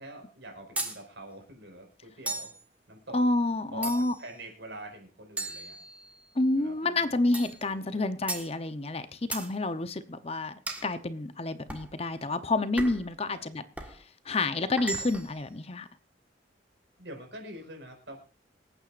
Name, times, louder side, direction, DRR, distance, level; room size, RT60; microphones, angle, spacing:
voice 1, 0.0-2.5 2.9-3.2 3.7-5.8 6.5-7.4 7.6-8.1 13.2-13.6 17.0-18.2, right 1 dB, 80° right, 5.1 m, -45 dB
sound 1, 0.8-1.0 2.3-2.6 3.8-4.3 5.4-6.3 7.3-7.6 8.3-8.5 9.3-9.5 10.7-10.9 11.7-11.9 12.8-13.1 13.8-14.0 14.8-15.4, right 2 dB, 10° right, 1.5 m, -36 dB
voice 2, 3.1-4.1 6.4-9.0 9.3-13.6 14.3-15.9, left 2 dB, 35° left, 0.8 m, -29 dB
26.5 x 9.0 x 2.5 m
head